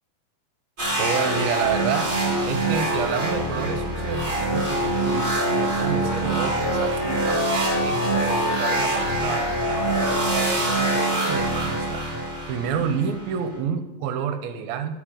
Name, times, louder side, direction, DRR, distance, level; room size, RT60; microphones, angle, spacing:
sound 1, 0.8-13.6, right 2 dB, 20° right, 2.9 m, -24 dB
voice 1, 1.0-2.1 2.4-14.9, right 7 dB, 85° right, 9 dB, 2.5 m, -30 dB
Wind instrument woodwind instrument, 5.9-11.2, left 3 dB, 75° left, 1.6 m, -31 dB
12.5 x 5.4 x 6.5 m, 1.0 s
omnidirectional pair, 4.3 m